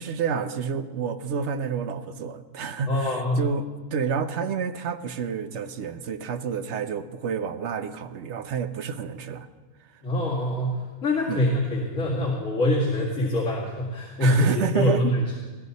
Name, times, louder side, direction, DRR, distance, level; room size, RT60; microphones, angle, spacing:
voice 1, 0.0-9.5 11.3-11.5 14.2-15.1, right 6 dB, 55° right, 10 dB, 1.0 m, -29 dB
voice 2, 2.9-3.4 10.0-15.2, left 1 dB, 55° left, -6 dB, 2.6 m, -24 dB
20.5 x 15.5 x 4.2 m, 1.3 s
omnidirectional pair, 1.6 m